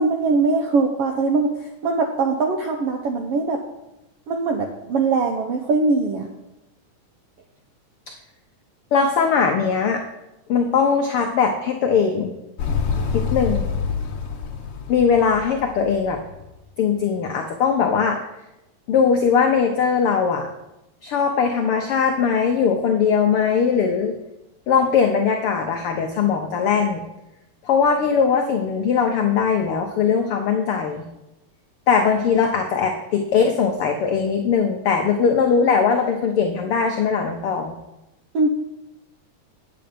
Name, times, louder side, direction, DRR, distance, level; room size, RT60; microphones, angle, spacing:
voice 1, 0.0-1.5 1.8-3.6 4.3-6.3 38.3-38.5, right 3 dB, 80° right, 3 dB, 1.3 m, -21 dB
voice 2, 8.9-10.0 10.5-12.3 13.1-13.7 14.9-16.2 16.8-18.2 18.9-20.5 21.0-24.1 24.7-27.0 27.6-31.0 31.9-37.8, left 6 dB, 80° left, 3 dB, 1.2 m, -20 dB
Motorcycle, 12.6-16.5, left 5 dB, 60° left, 1.5 m, -27 dB
8.9 x 8.8 x 5.2 m, 0.93 s
omnidirectional pair, 3.6 m